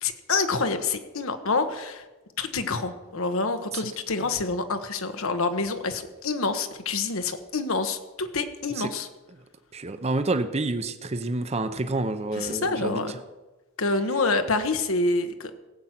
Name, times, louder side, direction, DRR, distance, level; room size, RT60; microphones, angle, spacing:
voice 1, 0.0-2.0 2.4-9.1 12.4-13.2 13.8-15.5, left 3 dB, 70° left, 8 dB, 1.1 m, -27 dB
voice 2, 9.7-13.2, right 2 dB, 30° right, 10 dB, 0.7 m, -28 dB
17.5 x 7.9 x 5.9 m, 1.1 s
head